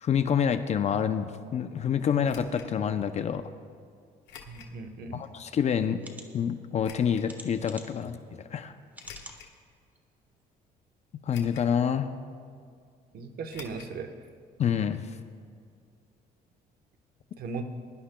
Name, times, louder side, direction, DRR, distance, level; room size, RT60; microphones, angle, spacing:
voice 1, 0.0-3.5 5.1-6.0 6.3-8.2 8.5-8.7 11.3-12.1 14.6-15.1, left 8 dB, 40° left, 9 dB, 0.5 m, -27 dB
sound 1, 2.2-2.7 4.3-4.8 5.3-5.4 6.8-7.3 9.0-9.6 10.2-10.3 11.3-11.8 12.0-12.1 13.5-13.9 14.2-14.3 14.6-14.7, left 8 dB, 80° left, 1.3 m, -48 dB
voice 2, 4.5-5.2 13.1-14.1 17.4-17.6, right 5 dB, 65° right, 7 dB, 1.1 m, -37 dB
sound 2, 5.2-5.3 6.0-6.3 7.3-8.0 8.9-9.4 10.0-10.1 10.4-10.5, right 1 dB, 10° right, 1.4 m, -46 dB
22.0 x 11.0 x 2.2 m, 2.2 s
cardioid pair, 110°, 17 cm